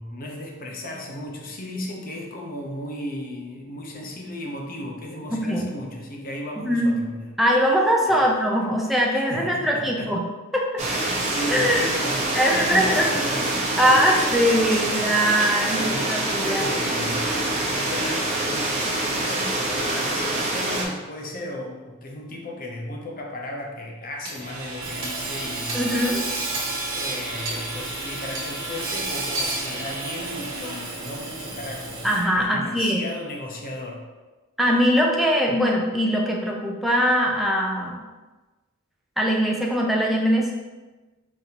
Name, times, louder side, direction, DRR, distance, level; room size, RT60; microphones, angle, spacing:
voice 1, 0.0-7.3 8.1-8.3 9.1-10.1 10.9-14.2 15.7-16.1 16.4-17.4 17.7-25.8 26.9-32.1 32.3-34.1, left 1 dB, 40° left, 1 dB, 0.6 m, -35 dB
voice 2, 5.3-5.7 6.6-6.9 7.4-10.2 10.5-10.8 11.5-11.8 12.3-13.1 13.8-16.7 25.7-26.2 32.0-33.0 34.6-38.0 39.2-40.5, equal, ahead, -2 dB, 0.4 m, -21 dB
sound 1, 10.8-20.8, right 2 dB, 30° right, 0.7 m, -25 dB
Hammer / Sawing, 24.2-32.4, right 2 dB, 65° right, 1.1 m, -31 dB
5.1 x 2.7 x 2.8 m, 1.2 s
head